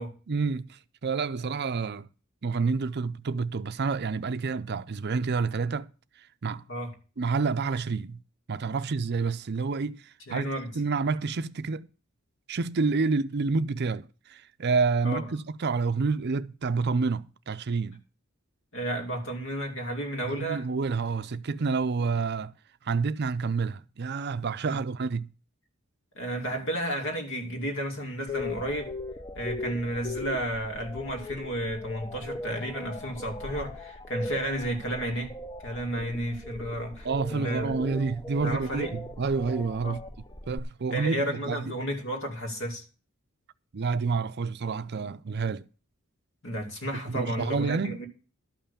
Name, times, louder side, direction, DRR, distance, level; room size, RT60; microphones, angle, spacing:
voice 1, 0.3-2.1 2.4-5.9 6.4-6.6 7.2-8.2 8.5-11.9 12.5-18.0 20.3-22.5 22.8-25.3 37.0-40.0 40.5-41.7 43.7-45.7 47.1-48.0, right 4 dB, 50° right, 0.5 m, -29 dB
voice 2, 10.3-10.7 15.0-15.3 18.7-20.7 24.7-24.8 26.2-29.0 29.3-35.3 35.6-37.7 38.4-38.9 39.8-40.0 40.9-42.8 46.4-48.1, right 1 dB, 60° left, 2.5 m, -32 dB
sound 1, 28.3-40.6, left 2 dB, 20° left, 0.7 m, -39 dB
12.0 x 5.7 x 6.9 m
head